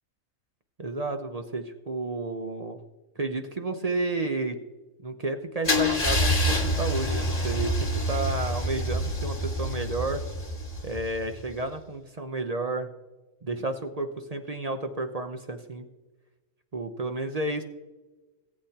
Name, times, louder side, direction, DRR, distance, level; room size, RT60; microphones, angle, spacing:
voice 1, 0.8-2.8 3.2-4.6 5.0-10.2 10.8-12.9 13.4-15.9 16.7-17.6, right 2 dB, 35° right, 6 dB, 0.7 m, -31 dB
Car / Engine starting / Idling, 5.6-11.5, equal, 30° left, 1.6 m, -27 dB
19.0 x 8.6 x 2.9 m, 1.1 s
omnidirectional pair, 1.4 m